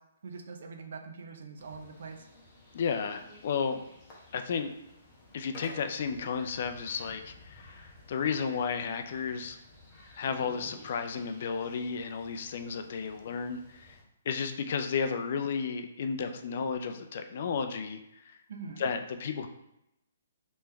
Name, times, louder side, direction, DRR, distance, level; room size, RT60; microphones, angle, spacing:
voice 1, 0.2-2.3 18.5-18.8, right 4 dB, 65° right, 4 dB, 0.6 m, -43 dB
sound 1, 1.6-14.0, left 2 dB, 25° left, 1.1 m, -55 dB
voice 2, 2.7-3.8 4.3-4.7 5.3-9.6 10.2-14.0 14.3-18.0 18.3-18.4 18.8-19.5, left 6 dB, 55° left, 7 dB, 0.4 m, -33 dB
Dog, 3.2-3.4 4.1-4.2 4.9-5.0 5.7-6.3 6.8-6.9 10.3-11.3 12.8-13.3 16.2-16.8, equal, ahead, 0.8 m, -52 dB
3.2 x 3.1 x 3.4 m, 0.84 s
hypercardioid pair, 155°, 0 cm